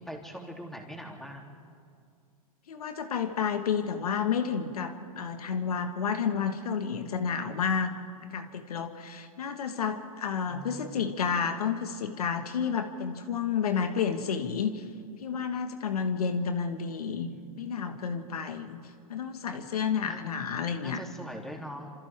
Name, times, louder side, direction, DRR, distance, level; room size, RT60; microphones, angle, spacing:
voice 1, 0.0-1.4 10.5-11.0 17.3-17.8 20.0-20.3 20.8-21.9, equal, ahead, 0 dB, 3.2 m, -42 dB
voice 2, 2.7-7.9 8.3-14.8 15.2-17.3 17.6-18.8 19.1-21.0, left 6 dB, 85° left, 7 dB, 1.7 m, -30 dB
28.0 x 27.0 x 3.7 m, 2.3 s
hypercardioid pair, 120°, 19 cm